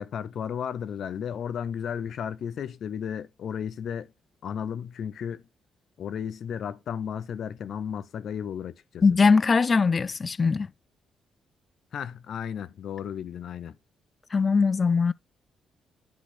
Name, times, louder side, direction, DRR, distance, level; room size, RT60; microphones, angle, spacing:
voice 1, 0.0-4.1 4.4-5.5 6.0-9.0 11.9-13.8, left 8 dB, 65° left, 0.7 m, -34 dB
voice 2, 9.0-10.7 14.3-15.1, left 4 dB, 35° left, 0.4 m, -21 dB
10.5 x 4.0 x 3.9 m
cardioid pair, 90°, 0 cm